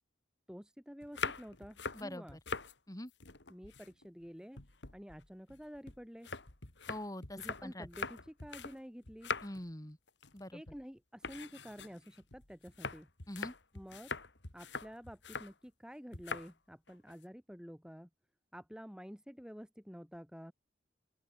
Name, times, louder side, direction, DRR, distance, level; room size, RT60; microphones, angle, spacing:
voice 1, 0.5-2.4 3.5-4.6 4.9-6.3 7.4-9.3 10.5-13.1 13.7-14.1 14.5-18.1 18.5-20.5, equal, 5° right, 2.1 m, -50 dB
sound 1, 1.0-2.7 3.1-4.3 4.6-8.8 9.0-9.7 10.1-10.4 10.7-10.8 11.2-15.5 16.1-16.5 16.9-17.2, left 4 dB, 75° left, 2.7 m, -43 dB
voice 2, 1.9-2.4 2.9-3.1 6.9-7.9 9.4-10.0 10.3-10.6 13.3-13.5, left 1 dB, 20° left, 3.0 m, -44 dB
open air
head